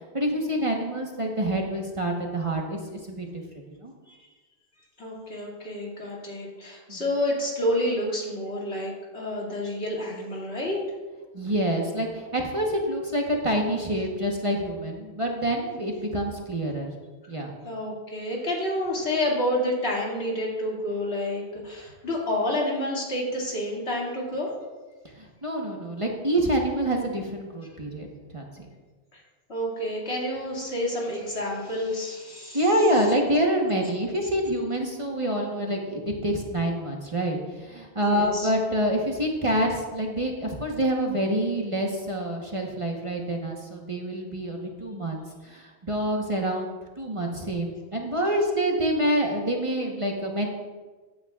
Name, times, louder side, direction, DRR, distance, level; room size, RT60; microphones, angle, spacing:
voice 1, 0.1-2.8 3.1-3.4 3.8-3.9 6.9-7.0 11.3-16.9 17.3-17.5 25.2-28.1 28.3-28.7 32.5-46.7 47.0-50.5, right 1 dB, 30° right, 0 dB, 1.1 m, -27 dB
voice 2, 5.0-10.8 17.6-24.5 29.1-29.2 29.5-32.6 38.0-38.5, left 1 dB, 75° left, -4 dB, 2.6 m, -29 dB
14.5 x 8.8 x 2.4 m, 1.3 s
omnidirectional pair, 1.1 m